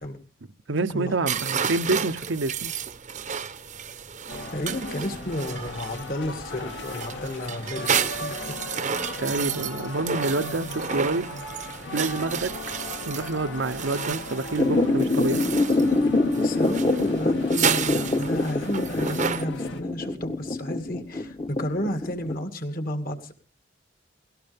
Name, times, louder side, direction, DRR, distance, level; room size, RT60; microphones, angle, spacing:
voice 1, 0.7-2.7 9.2-11.3 11.9-12.5 13.0-15.4, right 3 dB, 75° right, 0.8 m, -27 dB
sound 1, 1.3-19.5, right 7 dB, 40° right, 0.8 m, -32 dB
sound 2, 4.3-19.8, left 2 dB, 65° left, 2.0 m, -38 dB
voice 2, 4.5-8.5 16.4-23.3, left 1 dB, 50° left, 2.3 m, -32 dB
sound 3, 14.6-22.3, left 2 dB, 30° left, 1.2 m, -25 dB
18.5 x 17.5 x 3.5 m
head